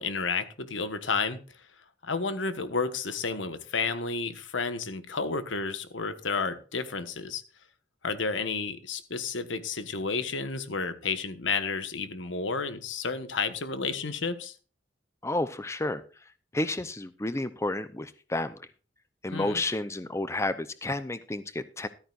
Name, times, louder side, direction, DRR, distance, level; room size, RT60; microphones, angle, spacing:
voice 1, 0.0-1.4 2.0-7.4 8.0-14.5 19.3-19.6, left 4 dB, 90° left, 10 dB, 1.3 m, -31 dB
voice 2, 15.2-16.0 16.5-18.5 19.2-21.9, left 2 dB, 15° left, 13 dB, 0.6 m, -31 dB
14.0 x 13.0 x 2.5 m, 0.36 s
head